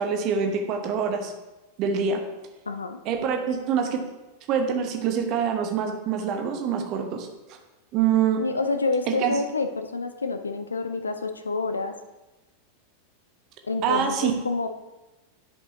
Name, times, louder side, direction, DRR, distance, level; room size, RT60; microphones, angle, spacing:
voice 1, 0.0-1.3 1.8-2.2 3.0-4.0 4.5-7.3 7.9-8.4 9.2-9.4 13.8-14.3, right 7 dB, 40° right, 4 dB, 1.2 m, -25 dB
voice 2, 2.7-3.0 8.4-12.0 13.6-14.7, left 3 dB, 75° left, 9 dB, 0.6 m, -28 dB
10.5 x 5.2 x 2.8 m, 1.1 s
figure-of-eight pair, 90°, 0 cm